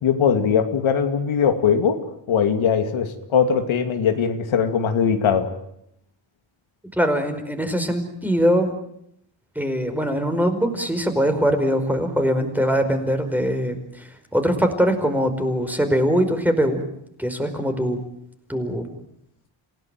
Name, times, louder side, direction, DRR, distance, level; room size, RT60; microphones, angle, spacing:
voice 1, 0.0-2.0 2.3-5.5, left 7 dB, 85° left, 6 dB, 2.7 m, -20 dB
voice 2, 6.9-8.7 9.5-16.8 17.2-18.0 18.5-18.9, equal, 5° right, 6 dB, 4.9 m, -22 dB
28.5 x 17.0 x 9.1 m, 0.75 s
cardioid pair, 100°, 46 cm